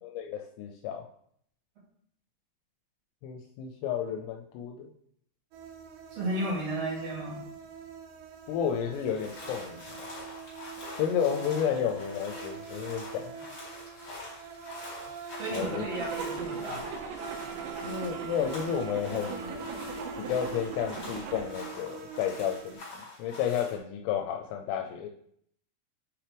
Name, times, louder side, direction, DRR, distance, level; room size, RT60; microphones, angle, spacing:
voice 1, 0.0-1.1 3.2-4.9 8.5-10.1 11.0-13.3 15.5-15.9 17.8-19.7 20.2-25.1, left 8 dB, 85° left, 3 dB, 3.2 m, -32 dB
sound 1, 5.5-22.7, right 6 dB, 90° right, 3.8 m, -43 dB
voice 2, 6.1-7.4 15.4-16.9, right 1 dB, 40° right, -6 dB, 2.7 m, -33 dB
sound 2, 8.9-23.8, left 2 dB, 35° left, 3.2 m, -46 dB
Zipper (clothing), 15.5-21.5, right 5 dB, 75° right, 3.5 m, -40 dB
7.7 x 5.8 x 3.4 m, 0.68 s
omnidirectional pair, 5.9 m